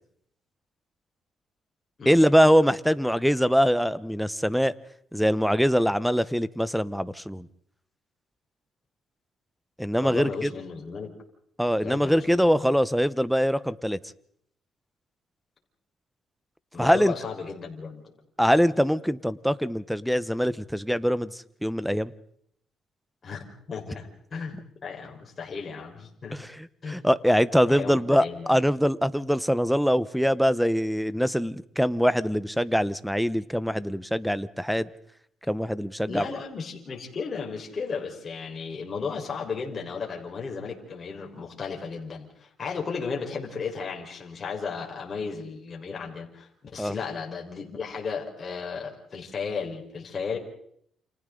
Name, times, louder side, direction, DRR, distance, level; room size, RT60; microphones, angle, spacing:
voice 1, 2.0-4.7 5.1-7.5 9.8-10.5 11.6-14.0 16.8-17.1 18.4-22.1 26.3-34.9 35.5-36.3 46.8-47.0, equal, ahead, 14 dB, 1.0 m, -23 dB
voice 2, 10.0-11.1 11.8-12.7 16.7-18.0 23.2-26.4 26.8-27.0 27.7-28.6 36.1-50.4, left 5 dB, 40° left, 0 dB, 4.7 m, -35 dB
29.5 x 27.5 x 3.9 m, 0.68 s
cardioid pair, 90°, 0 cm